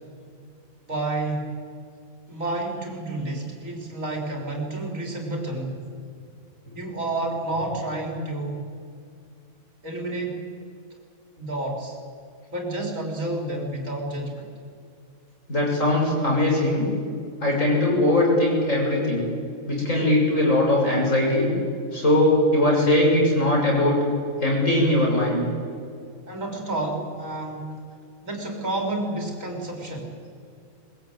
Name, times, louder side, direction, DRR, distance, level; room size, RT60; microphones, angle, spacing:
voice 1, 0.9-1.5 2.3-5.8 6.7-8.7 9.8-10.4 11.4-12.0 12.5-14.5 26.3-27.8 28.2-30.1, right 2 dB, 75° right, 1 dB, 4.5 m, -30 dB
voice 2, 15.5-16.8 17.4-19.2 19.7-21.5 21.9-24.0 24.4-25.4, left 1 dB, 70° left, -2 dB, 7.3 m, -20 dB
22.0 x 21.0 x 9.1 m, 2.3 s
omnidirectional pair, 1.4 m